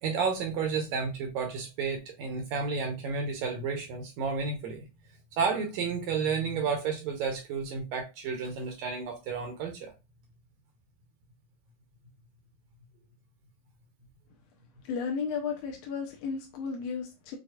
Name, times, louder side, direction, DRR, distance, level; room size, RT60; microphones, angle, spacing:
voice 1, 0.0-4.9 5.4-9.9, right 5 dB, 75° right, 3 dB, 1.9 m, -31 dB
voice 2, 14.8-17.4, left 5 dB, 75° left, 1 dB, 1.6 m, -34 dB
6.2 x 2.4 x 2.3 m, 0.25 s
omnidirectional pair, 3.5 m